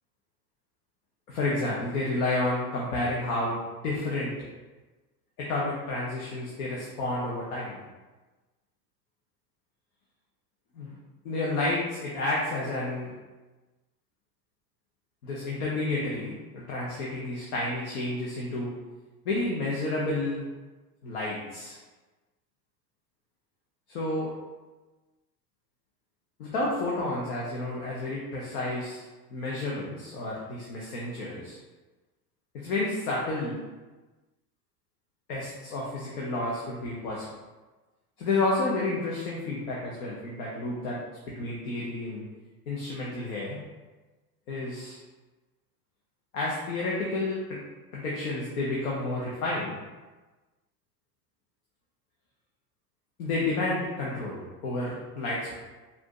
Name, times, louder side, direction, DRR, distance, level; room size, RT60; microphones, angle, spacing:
voice 1, 1.3-4.4 5.4-7.8 10.7-11.0 11.2-13.1 15.2-18.7 19.2-20.5 21.0-21.8 23.9-24.3 26.4-29.0 29.3-31.6 32.5-33.6 35.3-37.3 38.2-41.0 41.3-42.2 42.7-43.6 44.5-45.0 46.3-47.6 47.9-49.8 53.2-55.5, left 2 dB, 65° left, -5 dB, 1.1 m, -30 dB
4.8 x 2.7 x 3.7 m, 1.2 s
hypercardioid pair, 80°, 47 cm